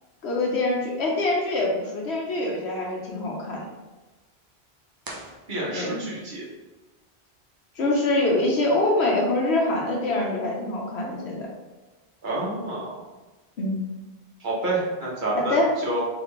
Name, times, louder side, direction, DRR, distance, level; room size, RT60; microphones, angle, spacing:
voice 1, 0.2-3.6 5.7-6.0 7.8-11.5 13.6-13.8 15.3-15.7, left 2 dB, 85° left, -2 dB, 1.3 m, -24 dB
sound 1, 5.0-6.2, right 1 dB, 25° right, 0.5 m, -42 dB
voice 2, 5.5-6.4 12.2-13.0 14.4-16.0, right 2 dB, 50° right, -4 dB, 1.2 m, -28 dB
4.1 x 3.4 x 3.3 m, 1.2 s
omnidirectional pair, 1.1 m